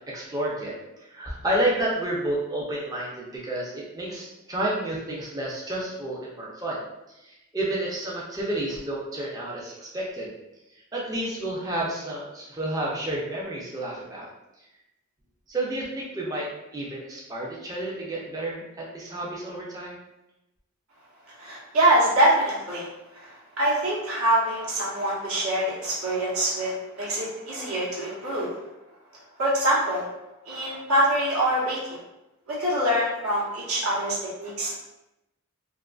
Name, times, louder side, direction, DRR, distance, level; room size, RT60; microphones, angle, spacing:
voice 1, 0.1-6.8 7.2-10.3 10.9-14.3 15.5-16.5 16.7-20.0, right 1 dB, 15° right, -5 dB, 0.3 m, -30 dB
voice 2, 21.4-28.5 29.4-30.1 30.5-32.0 32.5-34.7, right 1 dB, 90° right, -6 dB, 0.9 m, -25 dB
2.4 x 2.4 x 2.3 m, 0.93 s
head